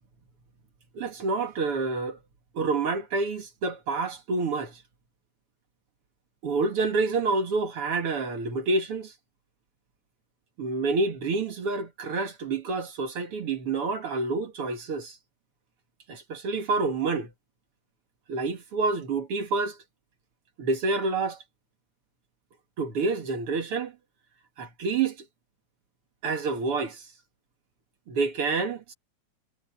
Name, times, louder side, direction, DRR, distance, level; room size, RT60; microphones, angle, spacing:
voice 1, 0.9-2.2 2.5-4.8 6.4-9.1 10.6-15.2 16.1-17.3 18.3-19.8 20.6-21.4 22.8-23.9 24.6-25.2 26.2-27.1 28.1-28.9, right 3 dB, 50° right, 2.3 m, -28 dB
omnidirectional pair, 3.7 m